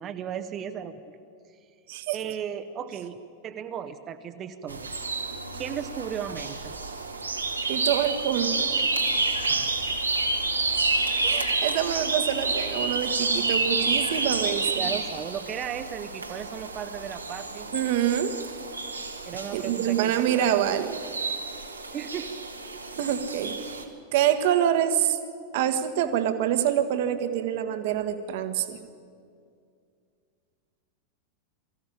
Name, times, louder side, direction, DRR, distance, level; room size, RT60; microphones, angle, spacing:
voice 1, 0.0-1.0 2.1-4.9 5.5-6.8 9.5-9.9 14.7-17.7 19.3-20.6 21.9-22.4, right 8 dB, 30° right, 9 dB, 0.9 m, -36 dB
sound 1, 4.7-23.8, right 3 dB, 80° right, 1.6 m, -29 dB
voice 2, 7.7-8.7 11.2-14.8 17.7-18.3 19.5-21.0 23.0-23.9 24.1-25.2 25.5-28.8, right 10 dB, 50° right, 9 dB, 1.3 m, -26 dB
22.0 x 14.5 x 8.8 m, 2.3 s
figure-of-eight pair, 90°, 0 cm